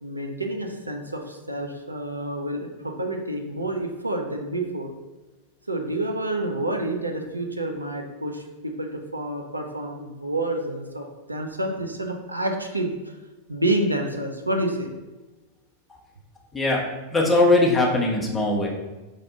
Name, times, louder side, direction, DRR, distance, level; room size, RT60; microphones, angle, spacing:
voice 1, 0.0-4.9 5.7-13.2 13.5-14.9, right 1 dB, 85° right, 3 dB, 0.4 m, -28 dB
voice 2, 16.5-18.7, left 2 dB, 10° left, -2 dB, 0.8 m, -20 dB
4.7 x 2.3 x 3.7 m, 1.2 s
figure-of-eight pair, 90°, 0 cm